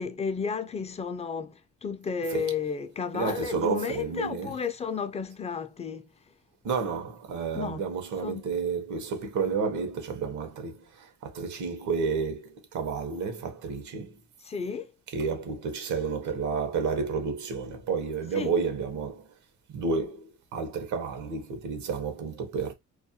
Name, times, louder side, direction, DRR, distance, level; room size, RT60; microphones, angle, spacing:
voice 1, 0.0-6.1 7.5-7.8 8.2-8.4 14.4-14.9 18.3-18.5, left 6 dB, 20° left, 0.4 m, -32 dB
voice 2, 3.1-4.5 6.6-14.2 15.1-19.3 19.7-22.7, right 5 dB, 75° right, 0.8 m, -31 dB
2.4 x 2.1 x 2.7 m
cardioid pair, 90°, 30 cm